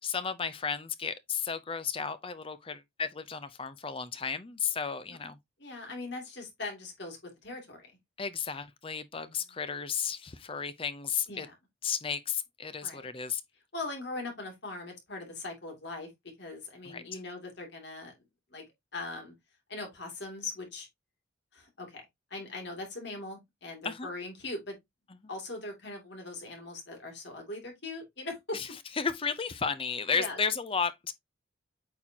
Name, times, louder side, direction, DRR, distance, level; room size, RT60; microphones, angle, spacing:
voice 1, 0.0-5.4 8.2-11.5 11.8-13.4 16.8-17.0 23.8-24.1 28.5-28.7 29.0-31.1, left 6 dB, 25° left, 0.5 m, -33 dB
voice 2, 5.6-8.0 9.2-9.4 11.3-11.5 12.8-13.1 13.7-16.1 16.4-18.1 18.5-18.6 18.9-19.3 19.7-20.9 21.5-22.0 22.3-24.8 25.3-28.6 30.1-30.4, left 2 dB, 55° left, 2.7 m, -40 dB
8.7 x 4.3 x 2.8 m
head